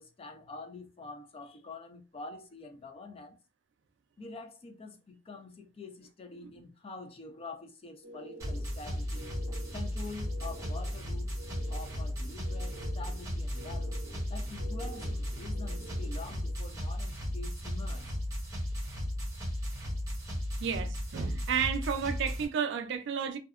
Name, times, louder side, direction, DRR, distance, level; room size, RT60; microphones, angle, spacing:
voice 1, 0.0-3.4 4.2-9.3 9.7-11.3 11.7-14.0 14.3-18.2, left 3 dB, 30° left, 0.3 m, -46 dB
sound 1, 8.0-16.5, equal, 90° left, 1.2 m, -50 dB
sound 2, 8.4-22.4, equal, 15° right, 0.7 m, -35 dB
voice 2, 20.6-23.4, right 7 dB, 60° right, 0.3 m, -32 dB
2.7 x 2.1 x 2.4 m
head